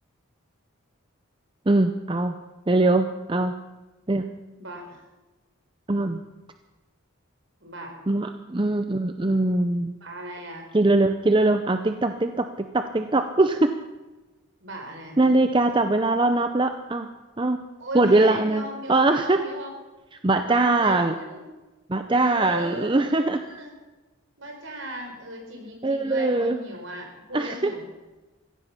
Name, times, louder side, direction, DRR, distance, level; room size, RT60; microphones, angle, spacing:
voice 1, 1.7-2.4 2.7-3.5 4.1-4.2 5.9-6.2 8.1-9.9 10.7-13.7 15.2-17.1 17.4-17.6 17.9-19.4 20.2-21.1 21.9-23.4 25.8-26.6 27.3-27.6, right 2 dB, 25° right, 8 dB, 0.6 m, -22 dB
voice 2, 4.6-5.0 7.6-7.9 10.0-10.7 14.6-15.2 17.8-19.7 20.4-21.4 22.1-23.7 24.4-27.9, right 1 dB, 60° right, 2 dB, 4.4 m, -37 dB
15.5 x 15.5 x 5.8 m, 1.1 s
head